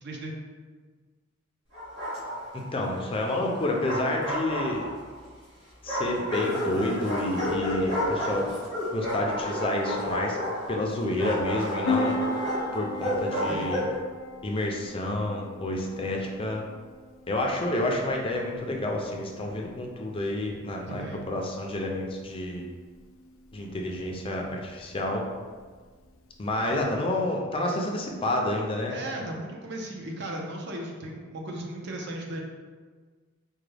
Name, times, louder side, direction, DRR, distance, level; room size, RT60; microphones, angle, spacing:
voice 1, 0.0-0.3 13.5-13.8 20.9-21.3 26.6-26.8 28.9-32.4, right 1 dB, 60° right, 0 dB, 0.6 m, -36 dB
Bark, 1.7-2.6 3.5-5.1 5.9-14.0, left 1 dB, 80° right, 1.5 m, -31 dB
voice 2, 2.7-4.9 5.8-8.5 8.9-10.4 10.7-12.2 12.7-13.8 14.4-16.6 17.3-22.7 23.5-25.2 26.4-29.0, left 1 dB, 25° left, 0 dB, 0.4 m, -29 dB
Piano, 11.8-26.8, left 2 dB, 80° left, 0.5 m, -38 dB
4.7 x 2.2 x 3.3 m, 1.5 s
head